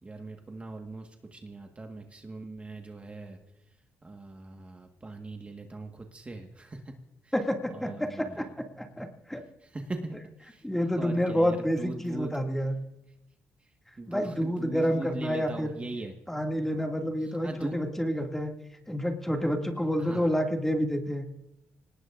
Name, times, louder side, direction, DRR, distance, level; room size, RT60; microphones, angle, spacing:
voice 1, 0.0-3.4 4.0-6.9 7.2-7.3 7.7-8.5 8.9-9.0 9.6-10.7 11.0-12.4 13.6-13.7 14.0-16.1 17.2-17.8 20.0-20.3, right 2 dB, 25° right, 3 dB, 1.5 m, -40 dB
voice 2, 7.3-9.4 10.6-12.7 14.1-15.8 16.3-18.5 18.9-21.2, equal, 5° left, 2 dB, 2.3 m, -29 dB
25.0 x 19.0 x 2.6 m, 0.89 s
cardioid pair, 85°, 5 cm